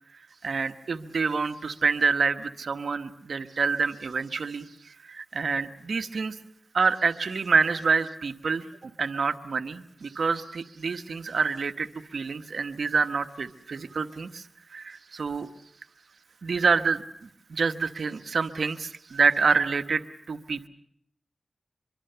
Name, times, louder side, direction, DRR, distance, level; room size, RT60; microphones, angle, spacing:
voice 1, 0.4-6.4 6.7-14.4 14.7-15.5 16.4-20.0 20.3-20.7, right 5 dB, 80° right, 10 dB, 1.1 m, -27 dB
24.5 x 23.0 x 6.8 m, 0.70 s
wide cardioid pair, 60°, 0 cm